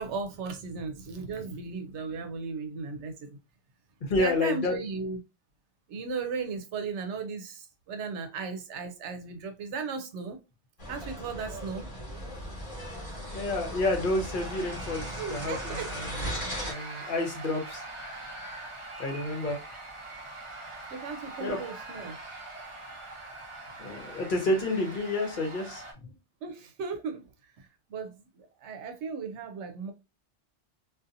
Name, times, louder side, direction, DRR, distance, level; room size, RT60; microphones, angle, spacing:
voice 1, 0.0-3.4 4.1-5.2 5.9-10.4 10.9-11.9 15.2-15.9 20.9-22.2 26.4-29.9, right 5 dB, 85° right, 0.9 m, -36 dB
voice 2, 4.0-4.7 13.3-16.3 16.6-17.8 19.0-19.6 21.4-21.7 23.8-26.1, left 2 dB, 50° left, 0.9 m, -30 dB
sound 1, 10.8-16.7, equal, 30° left, 1.1 m, -38 dB
sound 2, 12.1-25.9, right 2 dB, 35° right, 0.6 m, -43 dB
2.6 x 2.4 x 2.5 m
omnidirectional pair, 1.2 m